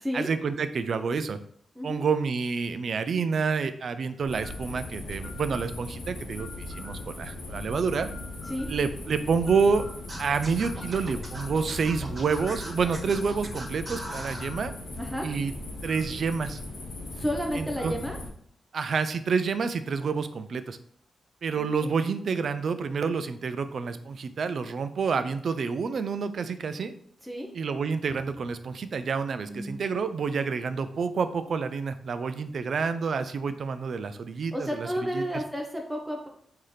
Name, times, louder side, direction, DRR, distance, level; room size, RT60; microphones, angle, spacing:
voice 1, 0.1-1.4 1.8-8.1 8.7-9.9 10.2-14.7 15.2-15.5 15.8-16.6 17.6-17.9 18.7-20.8 21.4-26.9 27.5-34.9 35.1-35.2, right 5 dB, 65° right, 11 dB, 0.3 m, -28 dB
sound 1, 4.2-18.3, left 2 dB, 80° left, 0.8 m, -38 dB
Scratching (performance technique), 10.1-14.5, right 1 dB, 40° right, 1.4 m, -40 dB
voice 2, 15.0-15.3 17.1-18.2 21.5-21.9 27.2-27.5 29.5-29.8 34.5-36.3, equal, 5° right, 1 dB, 0.6 m, -32 dB
3.9 x 2.7 x 3.2 m, 0.65 s
cardioid pair, 85°, 0 cm